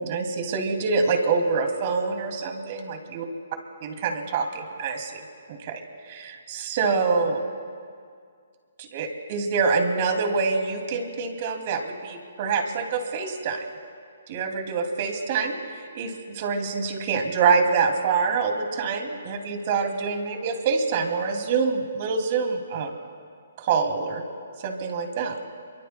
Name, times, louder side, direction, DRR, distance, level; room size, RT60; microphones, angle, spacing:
voice 1, 0.0-3.2 3.8-5.2 5.5-7.4 8.8-13.7 14.3-22.9 23.6-24.2 24.6-25.4, right 5 dB, 40° right, 4 dB, 2.5 m, -26 dB
27.5 x 23.5 x 2.2 m, 2.2 s
hypercardioid pair, 140°, 0 cm